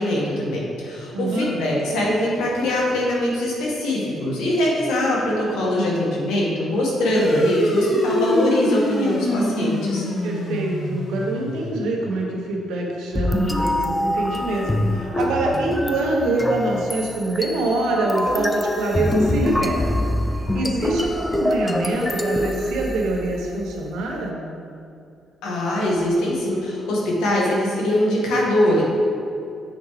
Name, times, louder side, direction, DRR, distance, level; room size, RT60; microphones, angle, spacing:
voice 1, 0.0-10.1 25.4-28.8, left 1 dB, 90° left, -4 dB, 1.5 m, -22 dB
voice 2, 1.1-1.5 10.2-20.0 20.3-24.5, right 2 dB, 90° right, -1 dB, 1.0 m, -25 dB
sound 1, 7.1-12.0, left 1 dB, 60° left, 1.4 m, -24 dB
sound 2, 13.1-23.5, left 1 dB, 10° left, 0.4 m, -24 dB
7.1 x 4.8 x 3.2 m, 2.5 s
cardioid pair, 90°, 0 cm